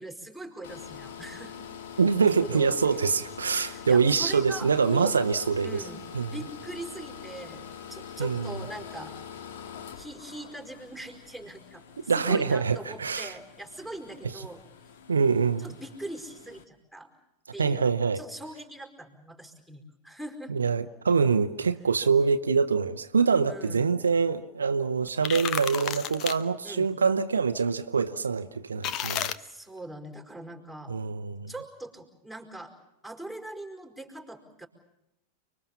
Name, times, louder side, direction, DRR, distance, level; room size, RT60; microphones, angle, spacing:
voice 1, 0.0-1.5 2.5-3.0 3.5-5.1 5.6-6.0 6.3-9.1 9.9-14.6 15.6-17.1 17.5-17.9 18.1-20.5 23.4-23.9 26.6-26.9 29.4-30.9 31.5-32.7 33.0-34.7, right 1 dB, 5° left, 4.9 m, -41 dB
sound 1, 0.6-16.6, left 8 dB, 55° left, 1.8 m, -44 dB
voice 2, 2.0-5.8 6.1-6.3 8.2-8.6 12.1-13.3 15.1-15.7 17.6-18.2 20.5-29.3 30.9-31.5, right 5 dB, 75° right, 0.9 m, -25 dB
sound 2, 25.1-26.4 28.8-29.4, left 10 dB, 35° left, 1.0 m, -31 dB
30.0 x 22.5 x 7.2 m
figure-of-eight pair, 90°, 0 cm